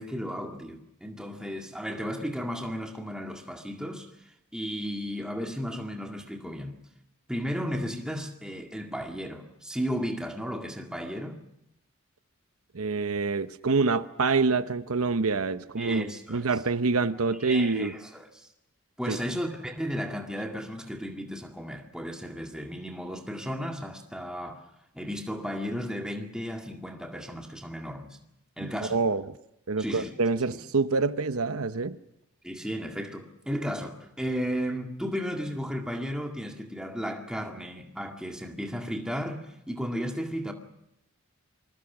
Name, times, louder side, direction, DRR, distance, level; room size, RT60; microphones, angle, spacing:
voice 1, 0.0-4.1 4.5-6.8 7.3-11.4 15.8-16.6 17.4-18.5 19.0-24.6 24.9-28.2 28.6-29.0 29.8-30.1 30.5-30.6 32.4-40.5, equal, 5° right, 1.9 m, -34 dB
voice 2, 12.7-17.9 19.1-19.2 28.6-29.2 29.7-32.0, right 4 dB, 90° right, 0.9 m, -26 dB
27.5 x 21.0 x 6.1 m
head